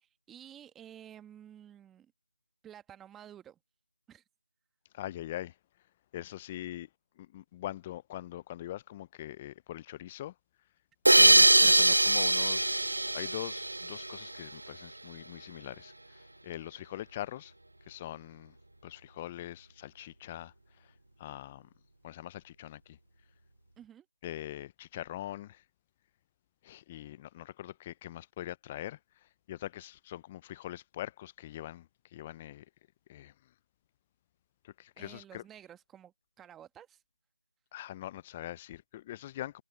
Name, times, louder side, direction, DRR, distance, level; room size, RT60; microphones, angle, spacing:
voice 1, 0.0-2.1 2.6-3.6 4.1-4.2 11.6-11.7 23.8-24.1 35.0-37.0, right 10 dB, 5° right, 1.4 m, -52 dB
voice 2, 4.9-5.5 6.1-6.9 7.3-10.3 11.2-15.9 16.4-17.5 17.9-18.5 18.8-20.5 21.2-21.6 22.0-22.8 24.2-25.6 26.6-29.0 29.5-31.9 32.1-32.6 33.1-33.3 34.8-35.4 37.7-39.6, left 13 dB, 15° left, 0.4 m, -42 dB
sound 1, 11.1-14.4, right 2 dB, 80° right, 0.4 m, -22 dB
figure-of-eight pair, 165°, 0 cm